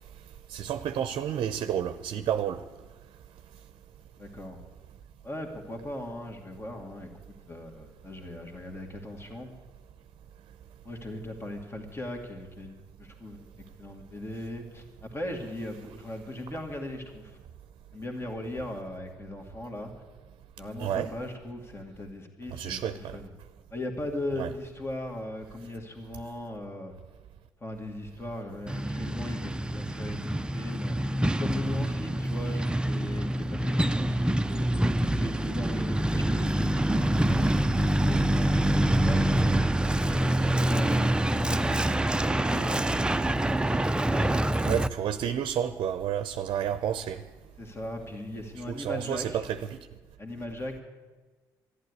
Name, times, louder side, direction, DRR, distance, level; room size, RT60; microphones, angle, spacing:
voice 1, 0.5-2.6 20.8-21.1 22.5-23.2 24.4-24.5 44.6-47.2 48.7-49.8, right 9 dB, 60° right, 0.7 m, -30 dB
voice 2, 4.2-4.6 5.2-9.5 10.8-13.5 13.8-17.4 17.9-19.9 20.6-23.3 23.7-26.9 27.6-31.0 31.3-34.7 35.0-37.5 38.0-39.5 40.0-43.7 44.1-44.3 47.6-49.4 50.2-50.8, left 1 dB, 30° left, 2.4 m, -39 dB
Truck, 28.7-44.9, right 1 dB, 10° right, 0.6 m, -26 dB
11.5 x 11.5 x 9.7 m
hypercardioid pair, 60°, 9 cm